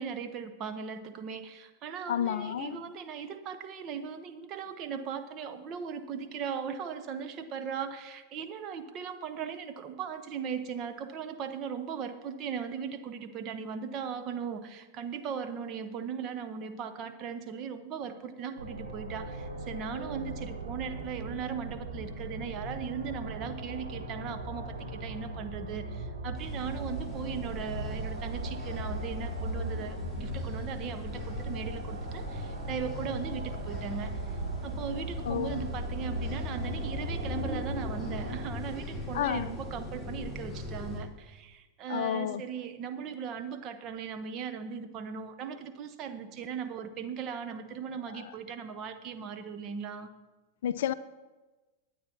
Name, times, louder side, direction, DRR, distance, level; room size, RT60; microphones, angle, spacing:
voice 1, 0.0-50.1, right 7 dB, 35° right, 1.0 m, -38 dB
voice 2, 2.1-2.8 35.3-35.6 39.1-39.5 41.9-42.4 48.1-48.2 50.6-50.9, left 10 dB, 55° left, 0.4 m, -30 dB
sound 1, 18.6-38.5, right 1 dB, 70° right, 1.8 m, -38 dB
sound 2, 26.4-41.0, left 2 dB, 10° right, 4.5 m, -40 dB
22.0 x 9.3 x 2.9 m
figure-of-eight pair, 90°, 0 cm